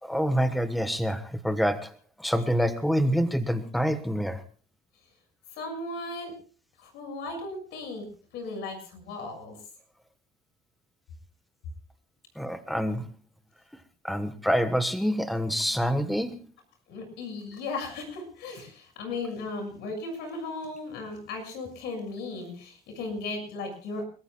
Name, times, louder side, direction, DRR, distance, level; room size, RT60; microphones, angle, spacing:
voice 1, 0.0-1.9 2.2-4.4 12.4-13.1 14.0-16.3, equal, ahead, 10 dB, 1.3 m, -26 dB
voice 2, 5.5-6.3 6.8-8.1 8.3-9.6 16.9-24.1, left 3 dB, 85° left, 5 dB, 6.6 m, -36 dB
30.0 x 14.0 x 2.3 m, 0.38 s
cardioid pair, 110°, 17 cm